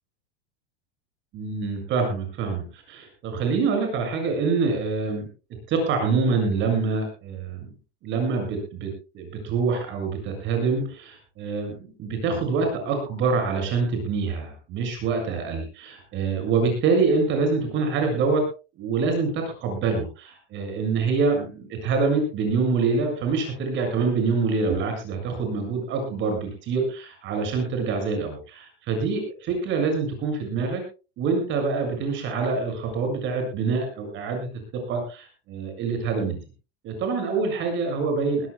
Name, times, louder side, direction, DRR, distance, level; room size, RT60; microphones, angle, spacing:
voice 1, 1.3-5.3 5.7-7.7 8.0-18.4 18.8-30.8 31.2-34.5 34.9-36.4 36.8-38.5, right 4 dB, 35° right, 4 dB, 7.3 m, -25 dB
23.0 x 17.0 x 2.3 m, 0.33 s
supercardioid pair, 170°, 33 cm